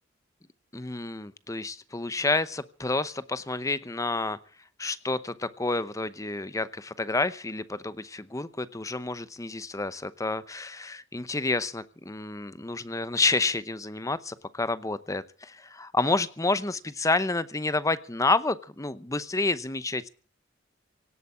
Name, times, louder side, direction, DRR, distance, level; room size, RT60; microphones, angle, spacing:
voice 1, 0.7-4.4 4.8-20.1, left 3 dB, 15° left, 15 dB, 0.8 m, -29 dB
17.5 x 8.2 x 8.6 m, 0.42 s
head